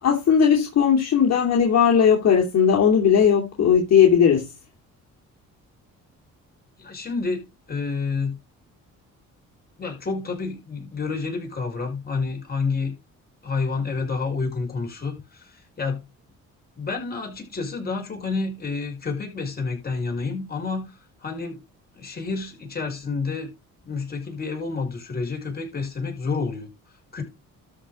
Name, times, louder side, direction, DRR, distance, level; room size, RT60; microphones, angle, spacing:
voice 1, 0.0-4.5, left 7 dB, 60° left, 2.7 m, -18 dB
voice 2, 6.8-8.4 9.8-12.9 13.4-16.0 16.8-21.6 21.9-23.5 23.8-26.7 27.1-27.2, left 4 dB, 30° left, 5.5 m, -29 dB
13.0 x 4.4 x 5.1 m
cardioid pair, 105°, 30 cm